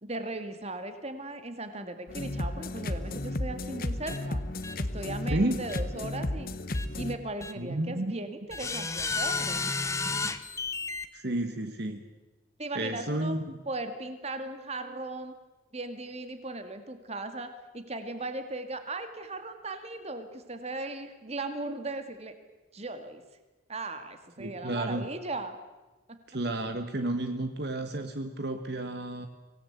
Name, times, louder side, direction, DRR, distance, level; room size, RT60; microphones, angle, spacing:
voice 1, 0.0-4.4 4.8-6.5 7.0-9.7 12.6-13.4 13.7-15.3 15.7-22.3 22.7-23.2 23.7-25.6 26.1-26.2, right 2 dB, 35° right, 8 dB, 2.1 m, -37 dB
sound 1, 2.1-7.2, left 1 dB, 50° left, 1.1 m, -33 dB
sound 2, 4.1-4.2 4.6-4.7 5.7-5.8 6.7-6.9 7.4-7.5 8.5-11.1, left 4 dB, 15° left, 1.0 m, -32 dB
voice 2, 5.3-5.6 7.6-8.1 11.1-12.0 12.7-13.5 24.4-25.1 26.3-29.3, right 1 dB, 55° right, 7 dB, 1.5 m, -31 dB
25.0 x 18.0 x 8.2 m, 1.2 s
head